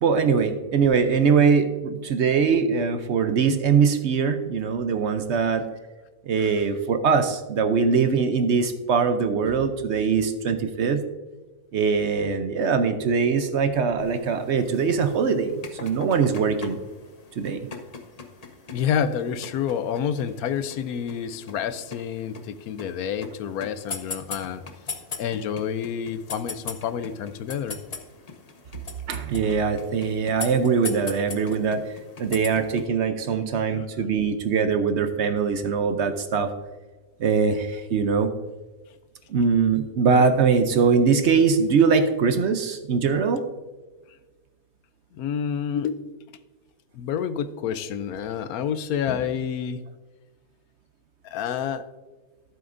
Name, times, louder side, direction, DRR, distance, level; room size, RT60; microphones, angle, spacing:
voice 1, 0.0-5.7 6.3-11.0 11.7-15.5 15.8-16.8 17.4-17.7 29.1-31.8 32.2-36.5 37.2-38.3 39.3-43.4, right 5 dB, 60° right, 9 dB, 0.8 m, -22 dB
sound 1, 14.0-32.9, left 4 dB, 35° left, 0.7 m, -41 dB
voice 2, 18.7-24.6 25.2-27.8 33.7-33.9 45.1-46.1 46.9-49.8 51.2-51.9, left 8 dB, 85° left, 13 dB, 1.1 m, -28 dB
13.5 x 7.8 x 2.6 m, 1.3 s
omnidirectional pair, 1.5 m